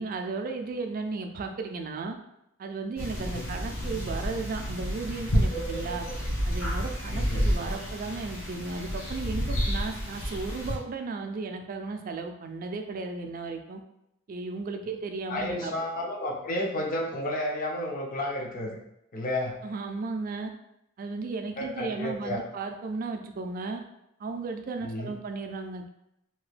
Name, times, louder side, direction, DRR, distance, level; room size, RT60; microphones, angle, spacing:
voice 1, 0.0-2.2 2.6-6.1 6.5-13.8 14.3-15.7 19.6-20.5 21.0-23.8 24.2-25.9, right 3 dB, 45° right, 5 dB, 0.3 m, -35 dB
sound 1, 3.0-10.8, equal, 75° left, 0.9 m, -30 dB
voice 2, 3.2-3.6 7.1-7.5 15.3-18.8 19.1-19.6 21.6-22.4 24.8-25.1, left 1 dB, 45° left, 0 dB, 0.5 m, -32 dB
2.8 x 2.3 x 3.2 m, 0.82 s
head